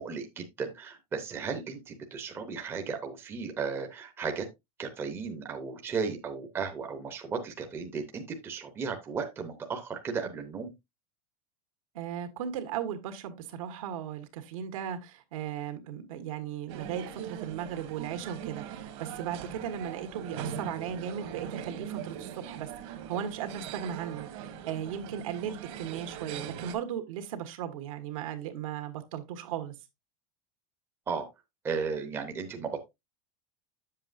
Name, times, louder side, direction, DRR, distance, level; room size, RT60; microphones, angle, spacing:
voice 1, 0.0-4.5 4.8-10.7 31.1-31.3 31.6-32.8, right 5 dB, 15° right, 0.7 m, -35 dB
voice 2, 11.9-29.7, right 9 dB, 70° right, 1.6 m, -37 dB
sound 1, 16.7-26.7, right 9 dB, 50° right, 1.3 m, -41 dB
8.4 x 7.4 x 2.5 m
supercardioid pair, 175°, 18 cm